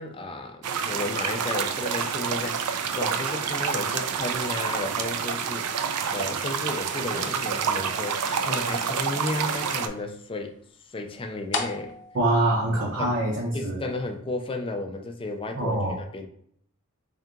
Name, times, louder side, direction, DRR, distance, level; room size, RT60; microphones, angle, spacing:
voice 1, 0.0-10.6 10.9-11.9 13.0-13.2 13.5-16.3, left 2 dB, 25° left, 5 dB, 0.4 m, -33 dB
sound 1, 0.6-9.9, right 6 dB, 90° right, 0.4 m, -28 dB
sound 2, 3.0-13.4, left 4 dB, 50° left, 0.8 m, -42 dB
voice 2, 12.1-13.8 15.5-16.0, right 1 dB, 55° right, -3 dB, 0.7 m, -24 dB
3.5 x 2.7 x 3.6 m, 0.65 s
head